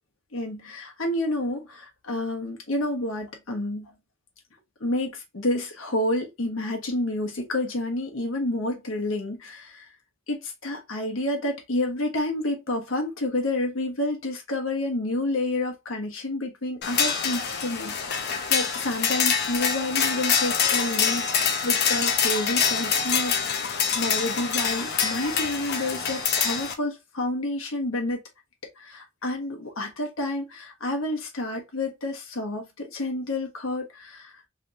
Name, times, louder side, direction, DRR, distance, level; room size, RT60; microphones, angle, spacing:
voice 1, 0.3-3.9 4.8-9.9 10.3-28.2 28.8-34.4, left 1 dB, 75° left, 1.1 m, -29 dB
sound 1, 16.8-26.7, left 6 dB, 55° left, 0.7 m, -25 dB
3.4 x 3.0 x 2.5 m
head